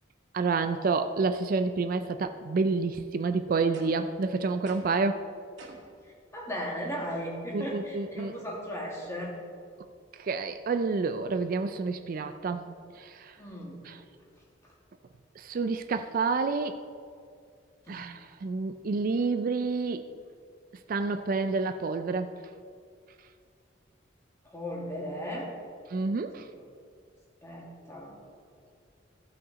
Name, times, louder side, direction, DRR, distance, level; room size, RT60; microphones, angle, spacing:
voice 1, 0.3-5.2 7.5-8.3 10.2-13.4 13.8-14.0 15.4-16.8 17.9-20.1 20.9-22.3 25.9-26.5, right 4 dB, 50° right, 9 dB, 0.4 m, -29 dB
sound 1, 3.7-4.2 4.7-5.1 5.6-6.0, right 2 dB, 75° right, 2.0 m, -48 dB
voice 2, 6.3-9.3 13.4-13.9 17.9-18.0 24.5-25.5 26.3-26.6 27.4-28.1, equal, 15° left, -3 dB, 2.0 m, -36 dB
15.5 x 5.6 x 4.0 m, 2.2 s
head